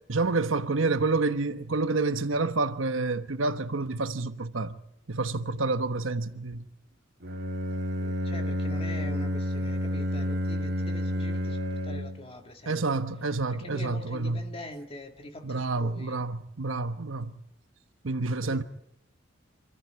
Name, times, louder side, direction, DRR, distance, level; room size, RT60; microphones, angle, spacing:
voice 1, 0.1-4.8 5.1-6.6 12.7-14.4 15.4-17.3 18.0-18.6, right 3 dB, 75° right, 1.1 m, -28 dB
Bowed string instrument, 7.2-12.3, equal, 55° right, 1.8 m, -30 dB
voice 2, 7.7-16.2 18.4-18.6, left 1 dB, 30° left, 2.0 m, -44 dB
26.5 x 14.0 x 9.3 m
head